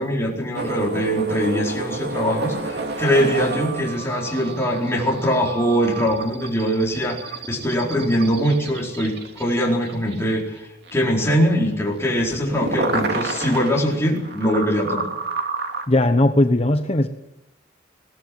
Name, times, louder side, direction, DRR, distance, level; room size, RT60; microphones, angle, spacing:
voice 1, 0.0-15.1, equal, 15° left, -2 dB, 4.4 m, -22 dB
sound 1, 0.5-10.6 10.9-11.0 11.2-15.9, right 3 dB, 60° right, 2.9 m, -30 dB
voice 2, 15.9-17.1, left 1 dB, 35° left, 7 dB, 1.0 m, -18 dB
22.0 x 17.0 x 7.7 m, 0.87 s
head